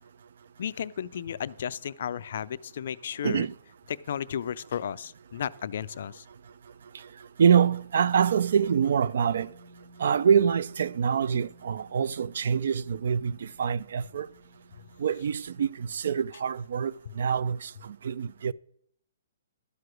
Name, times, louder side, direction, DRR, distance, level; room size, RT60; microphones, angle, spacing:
voice 1, 0.6-3.5 3.9-6.2, left 9 dB, 50° left, 0.3 m, -34 dB
voice 2, 3.2-3.5 7.4-9.6 10.0-14.3 15.0-18.5, right 7 dB, 55° right, 0.3 m, -25 dB
sound 1, 9.1-15.3, right 1 dB, 80° right, 1.9 m, -56 dB
12.0 x 4.8 x 6.2 m
hypercardioid pair, 175°, 0 cm